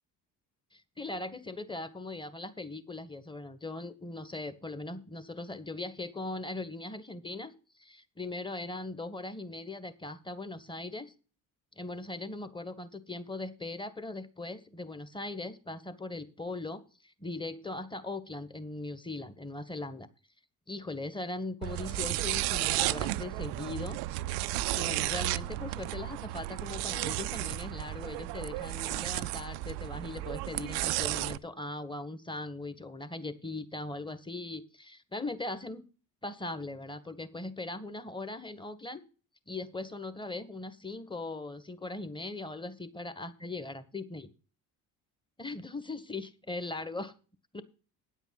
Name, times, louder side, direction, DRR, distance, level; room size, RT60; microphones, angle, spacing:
voice 1, 0.7-7.5 7.8-11.1 11.8-20.1 20.7-24.0 24.7-35.9 36.2-39.0 39.5-44.3 45.4-47.1 47.5-47.6, left 2 dB, 10° left, 13 dB, 1.6 m, -39 dB
sound 1, 21.6-31.4, right 17 dB, 70° right, 0.6 m, -33 dB
9.7 x 8.1 x 6.0 m, 0.36 s
hypercardioid pair, 55°, 42 cm